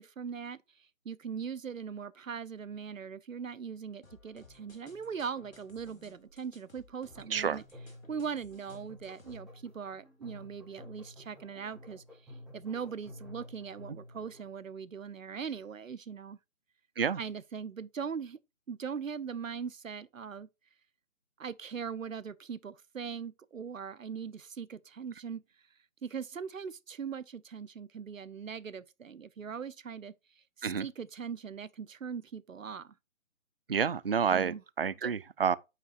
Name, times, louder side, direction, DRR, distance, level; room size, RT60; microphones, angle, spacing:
voice 1, 0.0-7.6 8.1-16.4 17.2-18.4 18.7-20.5 21.4-25.4 26.0-32.9 34.3-34.6 35.0-35.1, right 6 dB, 75° right, 0.8 m, -40 dB
sound 1, 4.0-9.4, left 3 dB, 80° left, 2.5 m, -59 dB
sound 2, 6.9-14.5, left 1 dB, ahead, 2.3 m, -52 dB
voice 2, 33.7-35.6, right 7 dB, 45° right, 0.4 m, -29 dB
9.4 x 5.7 x 2.5 m
figure-of-eight pair, 150°, 40 cm